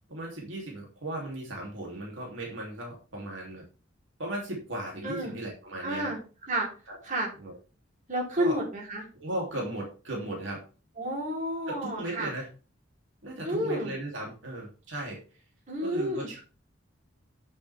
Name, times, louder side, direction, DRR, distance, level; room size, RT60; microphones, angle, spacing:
voice 1, 0.1-3.6 4.2-6.1 6.9-7.0 7.4-7.6 8.4-8.6 9.1-10.6 11.7-12.5 13.2-15.2 15.8-16.4, right 1 dB, 70° right, -2 dB, 3.5 m, -36 dB
voice 2, 5.8-6.2 6.5-6.7 7.0-7.3 8.1-9.0 11.0-12.3 13.4-13.9 15.7-16.3, right 1 dB, 40° right, -2 dB, 4.2 m, -30 dB
9.8 x 8.3 x 3.7 m, 0.35 s
head